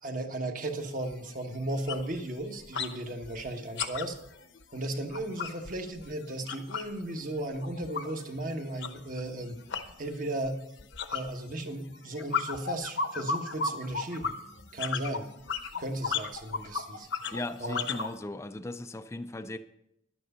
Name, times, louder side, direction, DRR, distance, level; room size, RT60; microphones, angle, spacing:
voice 1, 0.0-4.2 4.7-9.6 10.0-10.6 11.1-14.3 14.7-15.3 15.8-17.1 17.6-17.9, right 1 dB, 45° right, 5 dB, 1.2 m, -35 dB
sound 1, 0.6-0.7 1.1-1.3 1.6-2.9 3.2-7.0 7.3-18.1, left 5 dB, 65° left, 0.9 m, -35 dB
voice 2, 17.3-19.6, left 2 dB, 15° left, 9 dB, 0.4 m, -37 dB
11.0 x 9.3 x 5.5 m, 0.81 s
head